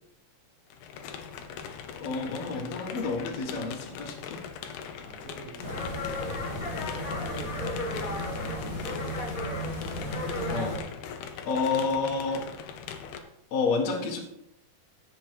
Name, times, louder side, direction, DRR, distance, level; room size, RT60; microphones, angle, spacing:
sound 1, 0.7-13.2, left 7 dB, 90° left, 3.0 m, -41 dB
voice 1, 1.9-4.4 10.5-10.8 11.5-12.5 13.5-14.2, left 4 dB, 55° left, -1 dB, 2.4 m, -29 dB
voice 2, 5.0-8.0 10.1-10.7, right 3 dB, 70° right, -7 dB, 4.1 m, -45 dB
sound 2, 5.6-10.8, left 1 dB, 35° left, 1.5 m, -33 dB
15.5 x 6.4 x 4.6 m, 0.79 s
omnidirectional pair, 4.4 m